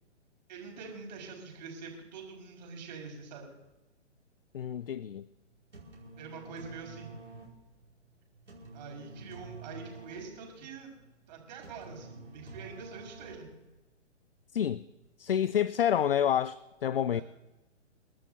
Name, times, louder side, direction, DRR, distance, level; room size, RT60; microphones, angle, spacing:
voice 1, 0.5-3.5 6.2-7.1 8.7-10.9 11.3-13.5 17.1-17.2, right 5 dB, 40° right, 5.1 m, -45 dB
voice 2, 4.5-5.2 14.5-14.8 15.2-17.2, left 9 dB, 50° left, 0.5 m, -28 dB
sound 1, 5.5-13.7, right 3 dB, 75° right, 5.1 m, -49 dB
29.0 x 12.0 x 2.7 m
figure-of-eight pair, 125°, 36 cm